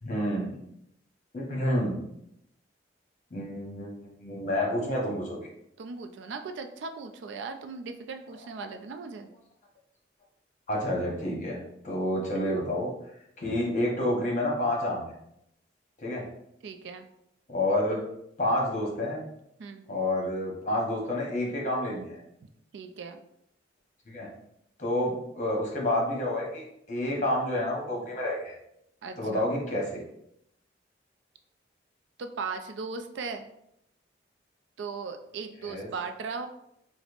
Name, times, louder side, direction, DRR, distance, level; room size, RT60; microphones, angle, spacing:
voice 1, 0.0-0.6 1.3-2.0 3.3-3.9 4.2-5.4 10.7-12.9 13.4-15.1 16.0-16.3 17.5-18.0 18.4-19.2 19.9-22.2 24.1-24.3 24.8-28.5 29.2-30.0 35.6-35.9, left 1 dB, 40° left, -3 dB, 0.9 m, -29 dB
voice 2, 5.8-9.3 16.6-17.1 19.6-19.8 22.7-23.2 29.0-29.5 32.2-33.5 34.8-36.5, right 4 dB, 80° right, 7 dB, 0.3 m, -38 dB
4.9 x 2.0 x 2.4 m, 0.77 s
head